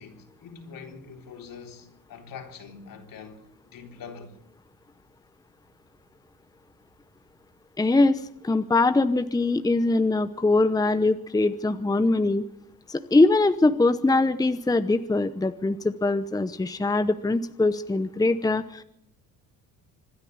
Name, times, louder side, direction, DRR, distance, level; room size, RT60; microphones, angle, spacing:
voice 1, 0.0-4.4, left 5 dB, 60° left, 3.8 m, -44 dB
voice 2, 7.8-12.4 12.9-18.8, left 2 dB, 10° left, 0.9 m, -22 dB
25.5 x 10.5 x 9.6 m
cardioid pair, 100°, 37 cm